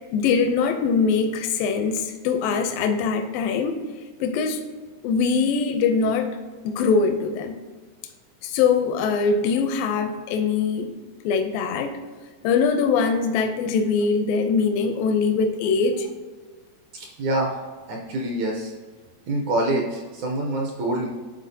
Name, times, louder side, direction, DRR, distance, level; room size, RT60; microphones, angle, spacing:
voice 1, 0.1-3.8 4.2-4.6 5.0-6.3 6.6-7.6 8.4-10.9 11.2-11.9 12.4-16.1, left 5 dB, 85° left, 7 dB, 2.3 m, -22 dB
voice 2, 16.9-17.6 17.9-18.7 19.3-21.1, right 1 dB, 75° right, 0 dB, 1.8 m, -26 dB
11.5 x 4.0 x 2.7 m, 1.4 s
omnidirectional pair, 4.0 m